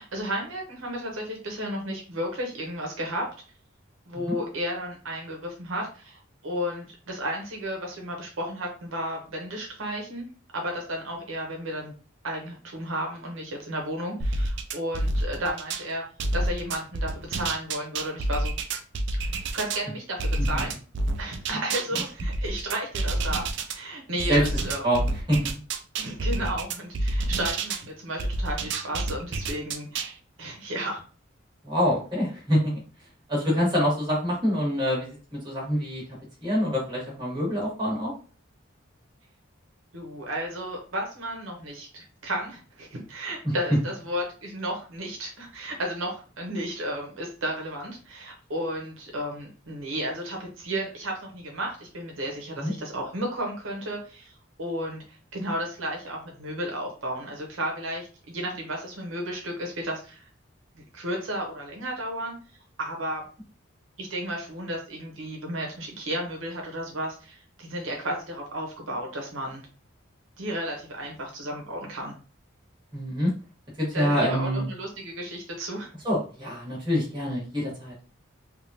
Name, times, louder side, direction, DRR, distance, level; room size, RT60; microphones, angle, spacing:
voice 1, 0.0-3.3 4.1-10.3 10.5-11.9 12.2-16.0 16.3-18.6 19.5-20.2 20.5-20.7 21.2-24.8 26.0-30.1 30.4-31.0 39.9-54.3 54.6-60.3 60.8-62.4 62.8-63.2 64.0-69.6 70.4-72.2 73.9-75.9, equal, 80° right, 1 dB, 0.9 m, -33 dB
sound 1, 14.2-15.9 16.2-19.8 20.2-23.8 24.2-27.8 28.2-30.1, right 2 dB, 60° right, 0.4 m, -28 dB
voice 2, 24.3-25.0 25.3-25.5 31.6-32.7 33.3-36.0 36.4-38.1 43.4-43.5 52.6-52.7 72.9-73.3 73.8-74.7 76.0-77.9, equal, 25° right, -5 dB, 1.5 m, -26 dB
3.5 x 2.4 x 2.7 m, 0.38 s
head